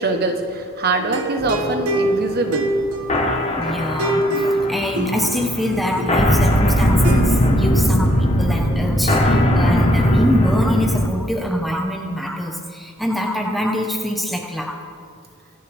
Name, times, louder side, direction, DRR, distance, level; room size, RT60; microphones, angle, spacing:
voice 1, 0.0-2.7, right 2 dB, 45° right, 5 dB, 1.2 m, -23 dB
sound 1, 1.0-7.7, right 1 dB, 90° right, 1.3 m, -25 dB
sound 2, 1.4-11.1, equal, 30° left, 1.4 m, -19 dB
voice 2, 3.6-14.8, equal, ahead, 1 dB, 1.2 m, -24 dB
24.0 x 11.0 x 3.6 m, 2.2 s
head